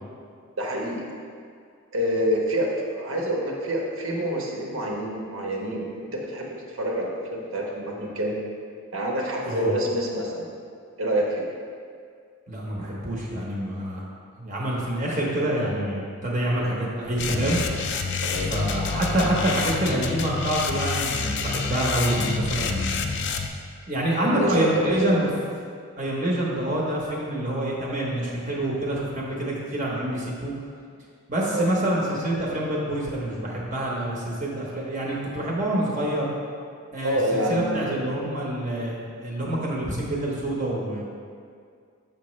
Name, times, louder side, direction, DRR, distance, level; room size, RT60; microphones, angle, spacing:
voice 1, 0.6-1.0 1.9-8.4 8.9-10.5 11.0-11.5 18.2-18.5 24.2-25.2 31.5-31.7 37.0-38.1, equal, 70° right, -1 dB, 1.1 m, -27 dB
voice 2, 12.5-14.0 14.4-17.6 18.5-23.0 23.9-25.3 26.0-30.5 31.3-36.3 36.9-41.0, right 1 dB, 35° right, -4 dB, 1.0 m, -26 dB
sound 1, 17.2-23.5, left 5 dB, 55° left, 0.4 m, -28 dB
7.0 x 5.9 x 3.1 m, 2.2 s
head